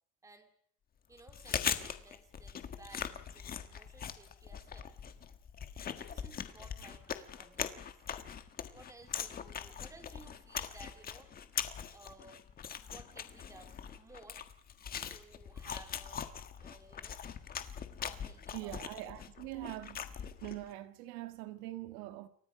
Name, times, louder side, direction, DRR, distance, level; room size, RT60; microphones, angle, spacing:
voice 1, 1.1-4.9 6.0-7.9 8.7-11.3 11.9-12.4 12.8-14.4 15.1-16.3 16.6-17.2 18.1-18.8, right 3 dB, 10° right, 2.5 m, -57 dB
Chewing mastication, 1.2-20.7, left 8 dB, 25° left, 1.5 m, -41 dB
voice 2, 18.5-20.2 20.4-22.3, right 16 dB, 85° right, 1.8 m, -43 dB
29.0 x 24.0 x 5.1 m
cardioid pair, 170°, 34 cm